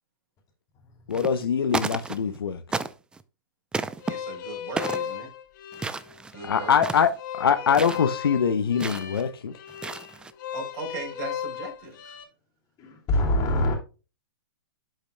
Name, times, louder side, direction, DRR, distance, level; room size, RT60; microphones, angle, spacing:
voice 1, 1.1-2.6 6.4-9.5, left 7 dB, 85° left, 0.8 m, -23 dB
sound 1, 1.1-1.5 1.7-2.4 2.7-3.2 3.7-4.1 4.8-5.1 5.7-6.4 6.7-7.1 7.7-8.0 8.8-9.2 9.7-10.3, right 4 dB, 5° right, 0.4 m, -32 dB
sound 2, 4.0-12.2, left 9 dB, 55° left, 2.6 m, -36 dB
voice 2, 4.1-5.3 6.3-6.7 10.5-12.2, right 4 dB, 50° right, 4.0 m, -38 dB
voice 3, 12.8-13.8, left 1 dB, 30° left, 2.9 m, -24 dB
12.0 x 5.2 x 2.2 m
hypercardioid pair, 130°, 12 cm